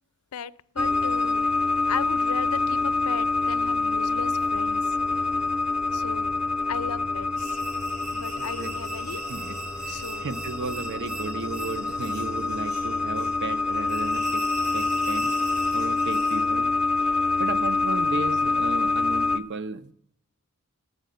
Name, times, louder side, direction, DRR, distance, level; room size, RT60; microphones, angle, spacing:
voice 1, 0.3-4.8 5.2-5.3 5.9-6.3 6.7-7.6 8.1-9.2 9.9-10.3, left 7 dB, 85° left, 0.5 m, -37 dB
sound 1, 0.8-19.4, left 3 dB, 5° right, 0.5 m, -26 dB
sound 2, 7.4-16.5, right 3 dB, 75° right, 5.6 m, -40 dB
voice 2, 8.4-8.7 9.3-14.4 14.7-15.3 15.7-16.7 17.0-19.9, right 4 dB, 55° right, 0.7 m, -35 dB
9.6 x 9.2 x 7.9 m
head